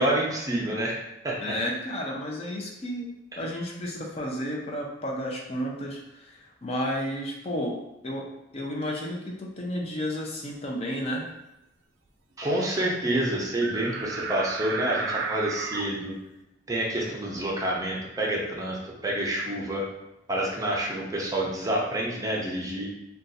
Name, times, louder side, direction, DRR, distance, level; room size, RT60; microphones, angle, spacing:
voice 1, 0.0-1.4 12.4-16.1 16.7-19.9 20.3-22.9, right 1 dB, 20° right, -3 dB, 0.6 m, -28 dB
voice 2, 1.4-3.1 3.4-7.7 8.0-8.3 8.5-11.2, equal, 35° left, -1 dB, 0.5 m, -32 dB
sound 1, 13.6-15.8, right 4 dB, 75° right, 0.4 m, -32 dB
2.6 x 2.3 x 3.9 m, 0.88 s
head